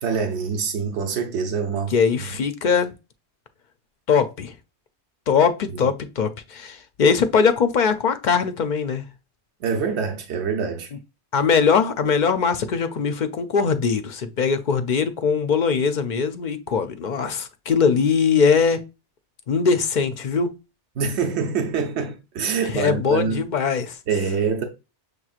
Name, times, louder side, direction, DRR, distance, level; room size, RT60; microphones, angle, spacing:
voice 1, 0.0-2.4 5.7-5.9 9.6-10.9 21.0-23.5 24.1-24.6, right 5 dB, 75° right, 1.1 m, -25 dB
voice 2, 1.9-2.9 4.1-4.5 5.3-9.1 11.3-18.8 19.5-20.5 22.7-24.0, left 6 dB, 55° left, 0.6 m, -21 dB
6.6 x 3.0 x 2.4 m
omnidirectional pair, 1.1 m